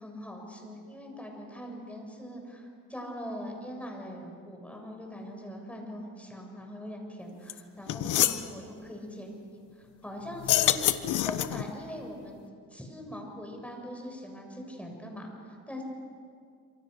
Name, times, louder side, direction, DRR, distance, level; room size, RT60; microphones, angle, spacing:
voice 1, 0.0-12.4 12.7-15.8, equal, 5° left, 1 dB, 7.3 m, -42 dB
sound 1, 7.5-7.6 7.9-8.4 10.4-11.7, left 13 dB, 80° left, 1.2 m, -26 dB
27.0 x 27.0 x 6.8 m, 2.3 s
cardioid pair, 90°, 30 cm